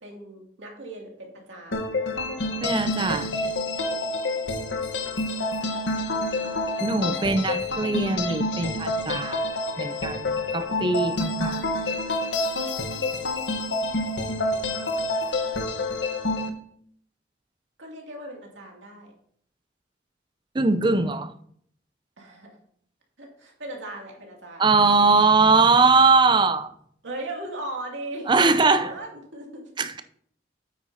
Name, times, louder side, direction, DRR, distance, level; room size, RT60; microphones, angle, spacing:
voice 1, 0.0-2.0 5.6-5.8 7.1-7.3 14.2-14.9 17.8-19.1 22.2-22.5 23.2-24.6 24.9-25.1 27.0-29.9, right 1 dB, 85° right, 2.4 m, -38 dB
sound 1, 1.7-16.5, left 2 dB, 70° left, 1.1 m, -28 dB
voice 2, 2.6-3.4 6.8-9.4 9.8-11.7 20.5-21.3 24.6-26.7 28.3-28.9 29.8-30.0, right 4 dB, 25° right, 0.5 m, -21 dB
9.0 x 8.7 x 2.7 m
head